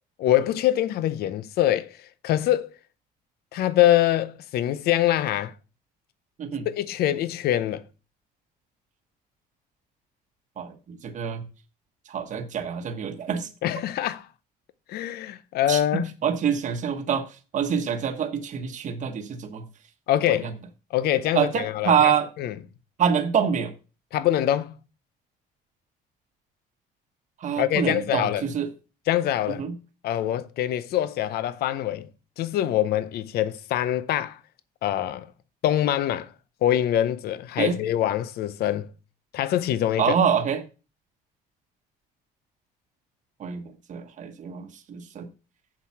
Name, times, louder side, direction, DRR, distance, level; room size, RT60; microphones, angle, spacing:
voice 1, 0.2-2.0 2.2-2.7 3.5-5.5 6.7-7.8 13.6-14.3 14.9-16.1 20.1-20.5 20.9-22.1 22.4-22.5 24.1-24.7 27.6-28.4 29.1-29.6 30.0-32.1 32.4-34.4 34.8-35.3 35.6-36.3 36.6-38.9 39.3-40.1, left 12 dB, 70° left, 0.6 m, -24 dB
voice 2, 10.6-11.4 12.1-13.5 15.7-17.3 17.5-19.6 20.4-20.5 21.3-22.3 23.0-23.7 27.4-28.7 29.6-29.7 37.6-37.7 40.0-40.6 43.4-45.3, right 7 dB, 45° right, 1.1 m, -26 dB
7.4 x 4.7 x 5.8 m
cardioid pair, 110°, 17 cm